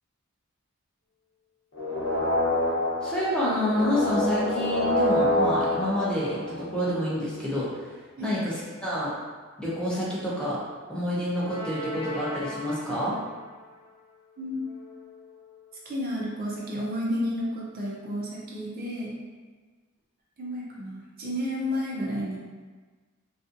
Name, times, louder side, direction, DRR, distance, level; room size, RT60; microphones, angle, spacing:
multiple siren, 1.7-7.1 11.4-13.1, left 1 dB, 75° left, 0.9 m, -27 dB
voice 1, 3.0-7.7 8.2-9.1 9.6-10.6 10.9-13.2, left 1 dB, 5° left, -8 dB, 0.5 m, -28 dB
voice 2, 14.4-14.7 15.9-19.1 20.4-22.4, equal, 45° right, -4 dB, 0.5 m, -31 dB
2.6 x 2.3 x 2.4 m, 1.4 s
head